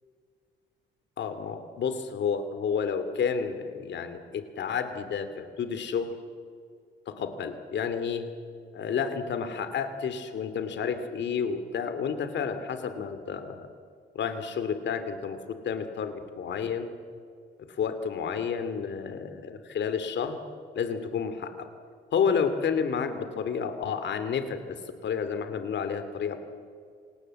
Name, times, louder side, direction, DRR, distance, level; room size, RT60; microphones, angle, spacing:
voice 1, 1.2-6.1 7.1-8.3 8.7-13.7 14.1-15.4 15.6-16.9 17.7-20.4 20.7-21.7 22.1-24.6 25.0-26.4, left 6 dB, 65° left, 9 dB, 2.6 m, -30 dB
26.5 x 18.5 x 7.6 m, 2.2 s
cardioid pair, 90°, 20 cm